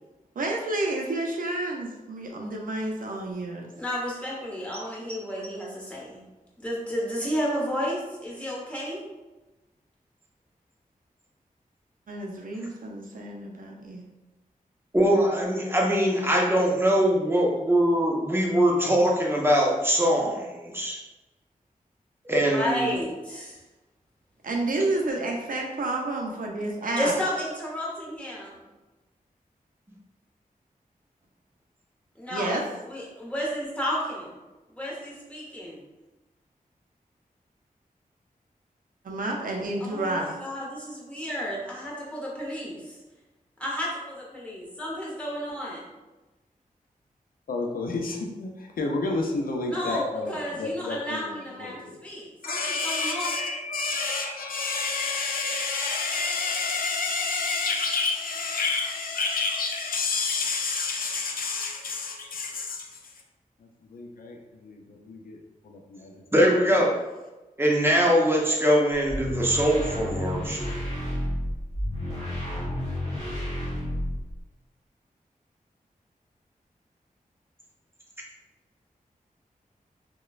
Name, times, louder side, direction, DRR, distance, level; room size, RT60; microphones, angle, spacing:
voice 1, 0.4-3.7 12.1-14.0 24.4-27.1 32.3-32.6 39.0-40.3, right 2 dB, 70° right, 0 dB, 0.5 m, -30 dB
voice 2, 3.8-6.2 6.6-9.0 22.5-23.6 27.0-28.6 32.2-34.4 34.7-35.8 39.8-43.0 43.6-45.9 49.6-53.3, equal, 10° left, -5 dB, 0.9 m, -32 dB
voice 3, 14.9-21.0 22.3-23.0 66.3-67.0 67.6-70.7, equal, 15° right, -2 dB, 0.5 m, -22 dB
voice 4, 47.5-52.0 52.4-63.0 63.8-65.4 65.6-66.2, left 3 dB, 75° left, 1 dB, 0.4 m, -29 dB
sound 1, 69.1-74.4, left 1 dB, 40° left, 1.1 m, -31 dB
3.0 x 2.1 x 2.3 m, 1.1 s
wide cardioid pair, 70°, 15 cm